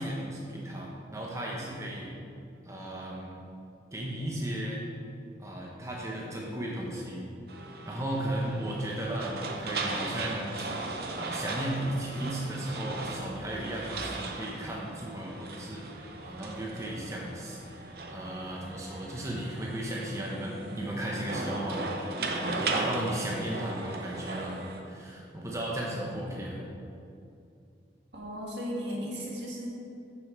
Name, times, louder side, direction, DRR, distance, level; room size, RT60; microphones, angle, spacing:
voice 1, 0.0-2.1 2.6-3.4 3.9-4.8 5.4-7.3 7.8-10.6 11.1-26.7, right 1 dB, 15° right, -3 dB, 0.9 m, -35 dB
sound 1, 7.5-24.8, right 3 dB, 55° right, 0.7 m, -37 dB
voice 2, 28.1-29.7, equal, 75° right, -3 dB, 1.7 m, -35 dB
7.0 x 6.8 x 4.4 m, 2.6 s
head